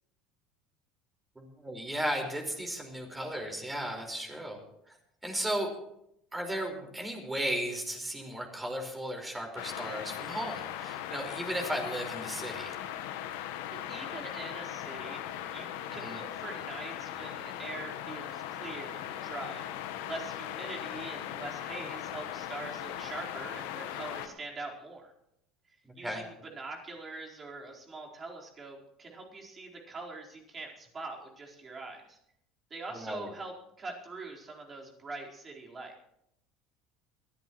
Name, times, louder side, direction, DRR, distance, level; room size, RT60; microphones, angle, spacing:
voice 1, 1.3-4.6 4.9-5.0 5.2-5.7 6.3-12.7 15.9-16.2 26.0-26.2 32.9-33.3, right 1 dB, 15° right, 3 dB, 5.0 m, -35 dB
sound 1, 9.6-24.3, left 11 dB, 70° left, 1.3 m, -39 dB
voice 2, 13.9-25.1 25.9-32.2 32.7-36.1, right 3 dB, 30° right, -1 dB, 4.4 m, -43 dB
22.5 x 14.5 x 3.2 m, 0.77 s
hypercardioid pair, 70°, 0 cm